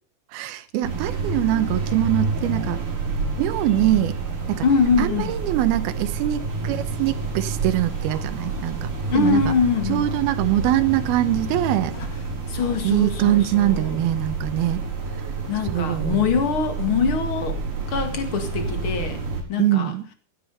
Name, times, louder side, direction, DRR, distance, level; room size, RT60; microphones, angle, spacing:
voice 1, 0.3-2.8 3.4-4.1 4.5-4.7 5.0-9.5 9.9-12.0 12.8-14.8 15.6-16.3 19.6-20.1, right 13 dB, 85° right, 2.8 m, -23 dB
sound 1, 0.8-19.4, right 4 dB, 55° right, 5.8 m, -29 dB
voice 2, 4.6-5.3 9.1-10.1 11.9-12.1 12.5-14.0 15.5-17.6 17.9-19.2 19.5-19.9, left 5 dB, 40° left, 2.5 m, -23 dB
16.5 x 9.9 x 5.6 m
omnidirectional pair, 4.4 m